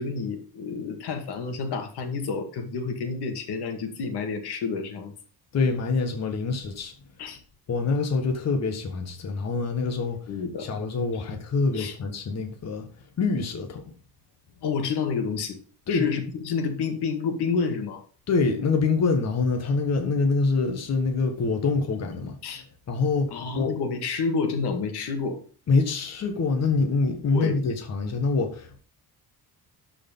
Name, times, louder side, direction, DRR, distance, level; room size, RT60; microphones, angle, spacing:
voice 1, 0.0-5.1 7.2-7.4 10.3-10.7 11.7-12.0 14.6-15.6 15.9-18.0 22.4-22.6 23.3-25.4 27.3-27.6, left 5 dB, 85° left, 2.2 m, -29 dB
voice 2, 5.5-6.9 7.7-10.2 10.6-12.9 13.2-13.8 15.9-16.0 18.3-22.4 22.9-23.8 25.7-28.8, left 4 dB, 40° left, 1.5 m, -25 dB
12.5 x 5.0 x 5.4 m
cardioid pair, 165°, 39 cm